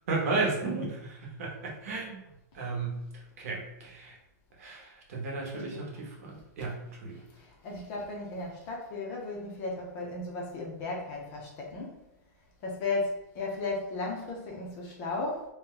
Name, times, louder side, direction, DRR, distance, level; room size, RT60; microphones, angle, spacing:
voice 1, 0.1-2.2 2.5-3.1 3.4-4.2 4.6-7.2, right 3 dB, 55° right, -1 dB, 0.9 m, -34 dB
voice 2, 5.5-5.8 7.3-12.0 12.6-15.5, left 3 dB, 25° left, -1 dB, 0.5 m, -35 dB
2.7 x 2.2 x 3.7 m, 0.85 s
hypercardioid pair, 165°, 10 cm